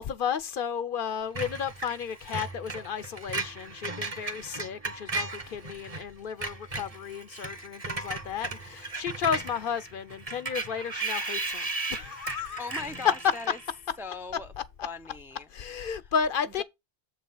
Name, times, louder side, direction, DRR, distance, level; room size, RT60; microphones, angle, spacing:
voice 1, 0.0-12.6 15.5-16.6, left 7 dB, 60° left, 0.7 m, -33 dB
Screech, 1.4-6.0 6.3-13.8, right 3 dB, 35° right, 1.2 m, -36 dB
voice 2, 12.6-13.6 14.0-14.5 14.8-15.5 16.0-16.1 16.6-16.7, left 4 dB, 5° right, 0.4 m, -39 dB
7.5 x 4.0 x 5.4 m
omnidirectional pair, 1.1 m